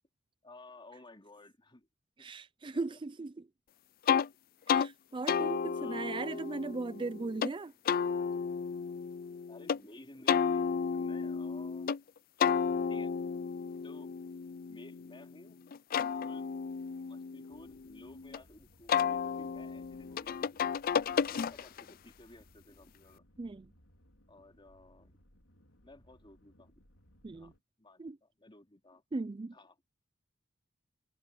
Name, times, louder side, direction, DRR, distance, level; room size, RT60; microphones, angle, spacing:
voice 1, 0.4-1.9 2.2-2.3 2.7-3.0 5.7-6.1 9.5-12.0 12.9-13.1 13.8-14.1 14.7-15.7 16.2-16.5 17.1-20.8 21.1-23.2 24.3-25.2 25.8-26.7 27.3-27.5 27.8-29.0 29.5-29.7, left 2 dB, 25° left, 3.1 m, -55 dB
voice 2, 2.2-3.5 4.7-7.7 23.4-23.7 27.2-27.5 28.0-28.2 29.1-29.6, right 3 dB, 25° right, 0.4 m, -38 dB
sound 1, 4.1-4.3 4.7-4.9 5.3-7.5 7.9-9.8 10.3-12.0 12.4-15.3 15.7-18.4 18.9-21.9, left 6 dB, 45° left, 0.4 m, -32 dB
sound 2, 17.5-27.6, equal, 85° left, 4.4 m, -64 dB
head